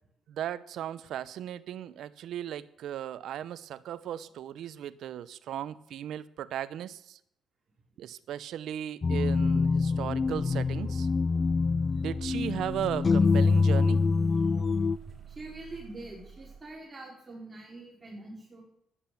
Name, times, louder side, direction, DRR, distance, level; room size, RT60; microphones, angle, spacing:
voice 1, 0.3-7.2 8.0-11.1 11.9-14.0, right 11 dB, 75° right, 17 dB, 0.8 m, -36 dB
sound 1, 9.0-15.0, left 4 dB, 35° left, 0.4 m, -25 dB
sound 2, 10.2-16.6, right 8 dB, 50° right, 2.2 m, -48 dB
voice 2, 15.3-18.6, right 2 dB, 30° right, -2 dB, 5.2 m, -44 dB
14.0 x 10.5 x 7.1 m, 0.75 s
cardioid pair, 90°, 0 cm